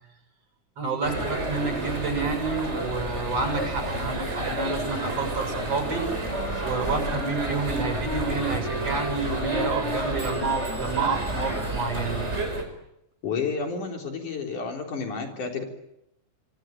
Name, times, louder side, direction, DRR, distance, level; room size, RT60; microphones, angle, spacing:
voice 1, 0.8-6.1 6.6-12.2, right 4 dB, 50° right, 4 dB, 8.5 m, -29 dB
sound 1, 1.0-12.6, right 1 dB, 20° right, 5.2 m, -30 dB
sound 2, 6.3-11.9, left 2 dB, 25° left, 4.4 m, -38 dB
voice 2, 13.2-15.6, left 5 dB, 80° left, 3 dB, 5.3 m, -30 dB
26.5 x 24.5 x 9.2 m, 0.82 s
omnidirectional pair, 3.5 m